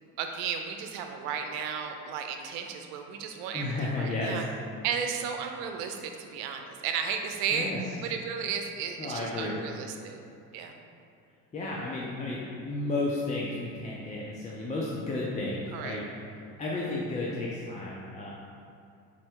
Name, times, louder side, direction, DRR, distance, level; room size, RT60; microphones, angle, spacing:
voice 1, 0.0-4.4 4.8-7.7 8.0-10.2 10.5-10.7 15.7-16.0, right 7 dB, 75° right, 4 dB, 0.6 m, -34 dB
voice 2, 3.5-4.4 7.5-7.8 9.0-9.6 11.5-16.0 16.6-18.3, left 2 dB, 20° left, -5 dB, 0.5 m, -32 dB
4.2 x 2.2 x 4.4 m, 2.5 s
supercardioid pair, 95°, 36 cm